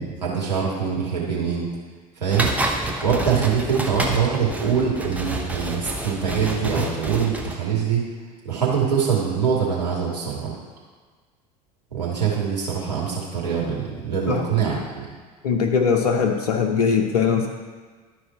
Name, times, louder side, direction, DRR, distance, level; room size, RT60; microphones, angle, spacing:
voice 1, 0.0-1.7 2.2-2.5 3.0-8.0 8.4-10.5 11.9-15.1, right 7 dB, 80° right, -5 dB, 2.5 m, -23 dB
sound 1, 2.3-7.5, right 1 dB, 5° right, 1.0 m, -28 dB
voice 2, 14.3-14.6 15.4-17.5, left 6 dB, 70° left, 3 dB, 0.8 m, -21 dB
12.0 x 4.9 x 4.3 m, 1.5 s
figure-of-eight pair, 70°, 21 cm